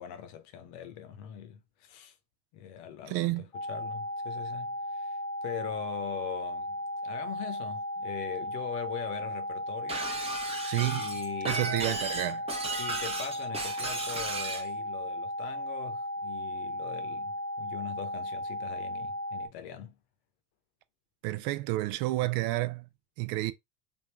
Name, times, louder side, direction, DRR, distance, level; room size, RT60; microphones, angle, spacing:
voice 1, 0.0-2.2 2.5-10.0 10.9-12.0 12.8-20.0, left 9 dB, 60° left, 0.9 m, -42 dB
voice 2, 3.1-3.5 10.7-11.1 11.4-12.5 21.2-22.9 23.2-23.5, right 18 dB, 55° right, 0.5 m, -30 dB
sound 1, 3.5-19.5, left 1 dB, 10° left, 0.5 m, -36 dB
Shatter, 9.9-14.7, right 3 dB, 15° right, 0.9 m, -35 dB
3.5 x 2.4 x 3.3 m
hypercardioid pair, 80°, 45 cm